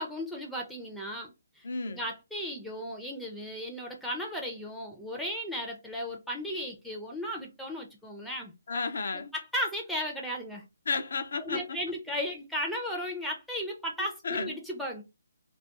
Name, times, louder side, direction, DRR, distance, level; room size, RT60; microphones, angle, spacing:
voice 1, 0.0-8.5 9.3-10.6 11.4-15.0, equal, ahead, 0.5 m, -35 dB
voice 2, 1.6-2.0 8.7-9.3 10.9-11.8 14.2-14.6, left 4 dB, 60° left, 0.4 m, -32 dB
2.3 x 2.2 x 2.7 m
figure-of-eight pair, 140°, 0 cm